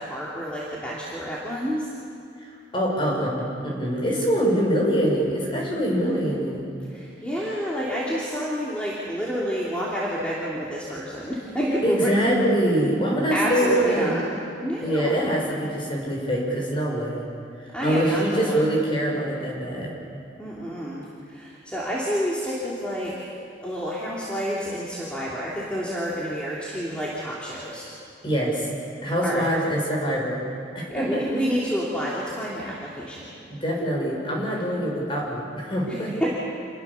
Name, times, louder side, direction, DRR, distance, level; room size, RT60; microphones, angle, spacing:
voice 1, 0.0-1.9 6.0-6.4 6.9-12.3 13.3-14.2 14.6-15.3 17.7-18.8 20.4-23.3 23.6-27.9 29.2-29.5 30.9-33.3 35.9-36.3, equal, 5° left, -7 dB, 2.9 m, -29 dB
voice 2, 2.7-6.7 11.8-14.2 14.8-17.2 17.8-19.9 28.2-28.7 29.0-30.4 30.7-31.2 33.5-36.3, equal, 25° left, -2 dB, 6.1 m, -24 dB
28.0 x 21.0 x 7.1 m, 2.5 s
head